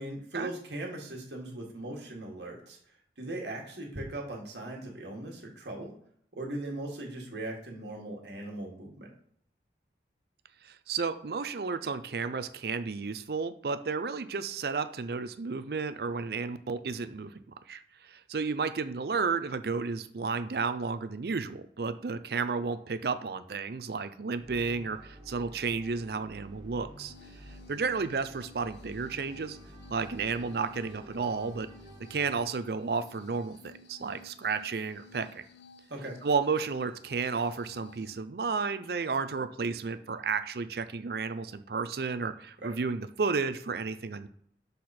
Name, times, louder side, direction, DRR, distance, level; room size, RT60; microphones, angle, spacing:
voice 1, 0.0-2.8 3.2-5.9 6.3-9.1 35.9-36.2 42.6-42.7, right 1 dB, 80° right, -1 dB, 1.8 m, -39 dB
voice 2, 10.6-17.4 17.7-27.1 27.7-29.6 29.9-31.7 32.1-35.4 36.2-44.3, right 4 dB, 65° right, 12 dB, 0.5 m, -32 dB
sound 1, 24.4-32.4, right 1 dB, 20° right, 0.8 m, -50 dB
sound 2, 27.1-38.1, left 4 dB, 80° left, 0.5 m, -56 dB
6.6 x 4.1 x 4.2 m, 0.66 s
head